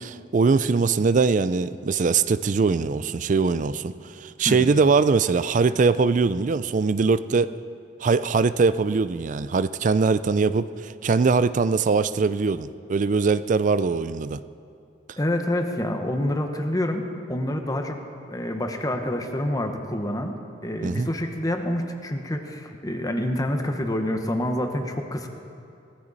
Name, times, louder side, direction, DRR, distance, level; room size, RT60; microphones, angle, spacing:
voice 1, 0.0-7.6 8.0-14.4 20.8-21.1, right 4 dB, 45° right, 15 dB, 0.4 m, -22 dB
voice 2, 15.2-18.0 18.3-20.3 20.6-25.3, left 1 dB, 20° left, 5 dB, 1.0 m, -27 dB
18.5 x 15.0 x 4.1 m, 2.6 s
head